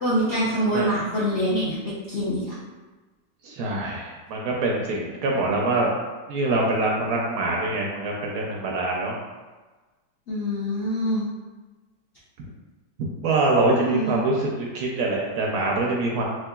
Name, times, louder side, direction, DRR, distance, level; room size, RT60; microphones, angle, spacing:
voice 1, 0.0-1.8 2.1-2.5 10.3-11.3 13.7-14.2, equal, 60° left, -9 dB, 0.7 m, -25 dB
voice 2, 3.4-5.9 6.3-9.2 13.2-16.2, right 2 dB, 70° right, -2 dB, 0.9 m, -24 dB
3.7 x 3.0 x 2.3 m, 1.3 s
omnidirectional pair, 1.9 m